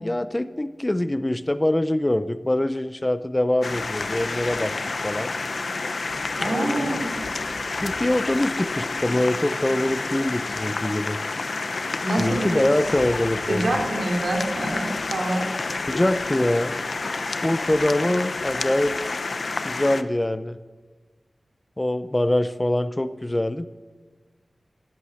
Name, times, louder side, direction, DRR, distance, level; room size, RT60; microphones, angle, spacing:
voice 1, 0.0-4.7 5.0-5.3 6.4-7.0 7.8-11.2 12.2-13.8 15.9-16.8 17.4-18.9 19.6-20.6 21.8-23.7, left 1 dB, 20° left, 13 dB, 0.6 m, -24 dB
sound 1, 3.6-20.0, left 3 dB, 70° left, 0.7 m, -29 dB
voice 2, 6.4-7.1 12.0-12.6 13.5-15.4, right 1 dB, 90° right, 0 dB, 3.4 m, -26 dB
14.0 x 11.5 x 8.5 m, 1.4 s
wide cardioid pair, 75°, 0 cm